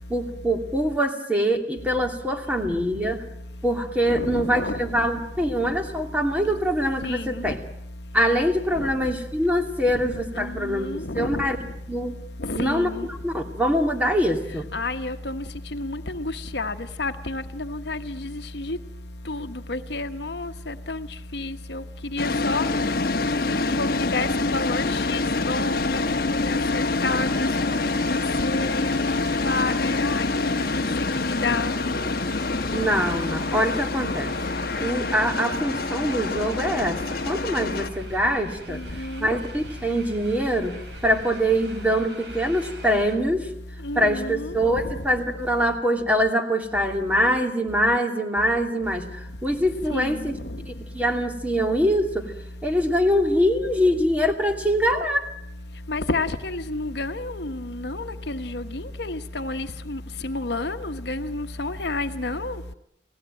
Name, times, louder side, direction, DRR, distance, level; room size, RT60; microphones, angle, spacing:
voice 1, 0.1-3.2 3.6-7.6 8.1-10.9 11.1-11.6 11.9-12.1 12.5-12.9 13.2-14.6 32.7-34.3 34.8-38.8 39.2-40.7 41.0-43.5 43.9-50.4 50.6-52.3 52.6-55.2, equal, 10° right, 3 dB, 2.6 m, -24 dB
voice 2, 4.1-4.9 7.0-7.5 8.8-8.9 10.4-11.4 12.4-13.1 14.7-15.4 15.7-18.8 19.3-21.1 21.3-21.8 22.1-22.6 23.5-29.2 29.4-30.8 31.2-31.7 38.7-39.3 43.8-44.6 49.9-50.3 55.9-62.6, left 2 dB, 75° left, 9 dB, 1.2 m, -30 dB
Cooling tower fan, 22.2-37.9, left 3 dB, 55° left, 1.1 m, -26 dB
sound 1, 25.7-43.2, right 2 dB, 70° right, 5.9 m, -44 dB
29.5 x 18.5 x 9.0 m, 0.79 s
head